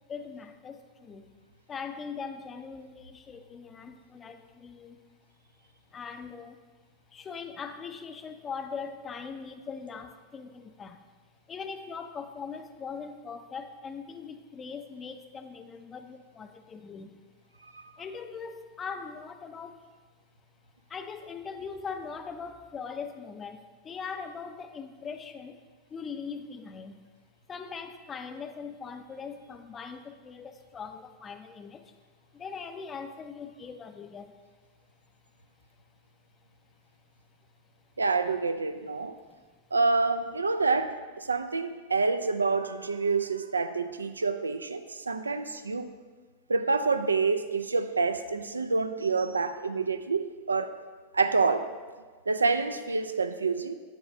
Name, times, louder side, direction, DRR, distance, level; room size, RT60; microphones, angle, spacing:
voice 1, 0.1-1.4 1.7-5.0 5.9-6.6 7.1-11.1 11.5-17.2 18.0-19.8 20.9-25.6 25.9-27.1 27.5-31.9 32.3-34.4 39.3-39.4, left 5 dB, 20° left, 8 dB, 0.4 m, -41 dB
voice 2, 38.0-39.1 39.7-45.9 46.5-50.7 51.1-51.7 52.3-53.7, right 4 dB, 75° right, 10 dB, 0.3 m, -27 dB
8.4 x 4.0 x 3.6 m, 1.4 s
figure-of-eight pair, 90°, 0 cm